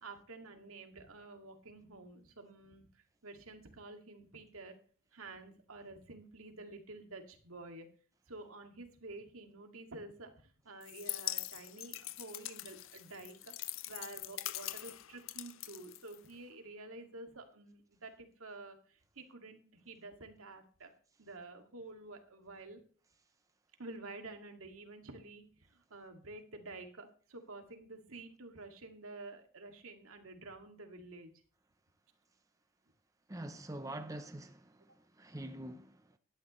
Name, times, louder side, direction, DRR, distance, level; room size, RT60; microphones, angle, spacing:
voice 1, 0.0-4.8 5.1-7.9 8.3-13.5 13.9-20.9 21.2-22.8 23.8-31.3, right 2 dB, 75° right, 2.2 m, -50 dB
sound 1, 10.8-16.5, left 15 dB, 65° left, 0.6 m, -43 dB
voice 2, 33.3-36.2, right 1 dB, 15° right, 0.7 m, -45 dB
16.5 x 11.5 x 3.2 m
head